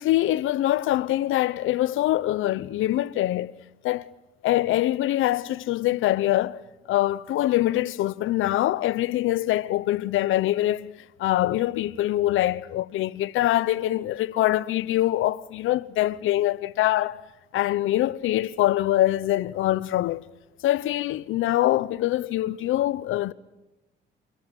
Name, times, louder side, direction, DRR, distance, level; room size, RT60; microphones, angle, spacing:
voice 1, 0.0-3.5 3.8-4.1 4.4-6.6 6.9-10.9 11.2-17.2 17.5-20.2 20.6-23.3, left 14 dB, 85° left, 0.9 m, -24 dB
28.5 x 22.0 x 9.1 m
cardioid pair, 90°, 20 cm